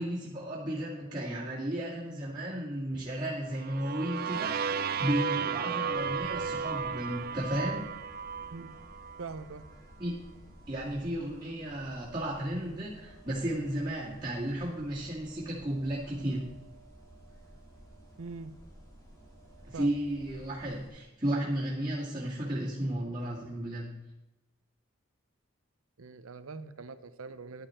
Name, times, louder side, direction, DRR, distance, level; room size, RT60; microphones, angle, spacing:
voice 1, 0.0-7.9 10.0-10.1 10.7-16.5 19.6-23.9, right 1 dB, 20° right, -8 dB, 2.1 m, -34 dB
sound 1, 3.5-9.4, right 6 dB, 45° right, 0.3 m, -34 dB
sound 2, 5.9-20.9, right 1 dB, 15° left, 2.1 m, -54 dB
voice 2, 9.2-9.6 18.2-18.5 19.7-19.9 26.0-27.7, right 4 dB, 85° right, 12 dB, 0.7 m, -42 dB
10.5 x 8.9 x 4.4 m, 0.97 s
head